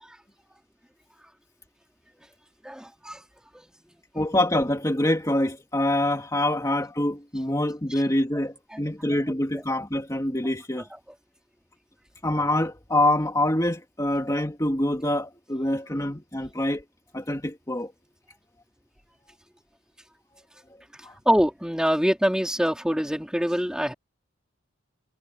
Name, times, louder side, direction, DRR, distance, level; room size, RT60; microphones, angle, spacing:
voice 1, 2.6-3.2 8.7-8.8 21.3-23.9, equal, 5° right, 4.3 m, -24 dB
voice 2, 4.1-10.9 12.2-16.8 17.1-17.9 21.0-21.1, left 1 dB, 15° left, 2.4 m, -25 dB
head